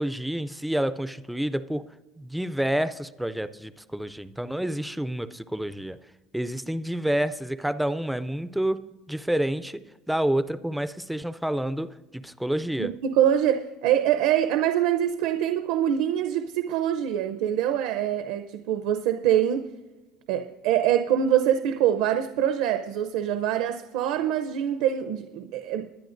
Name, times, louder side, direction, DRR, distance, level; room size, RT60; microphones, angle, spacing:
voice 1, 0.0-6.0 6.3-13.0, right 1 dB, ahead, 0.3 m, -29 dB
voice 2, 12.8-19.6 20.3-25.9, right 10 dB, 70° right, 0.6 m, -24 dB
20.5 x 10.0 x 2.6 m
cardioid pair, 175°, 0 cm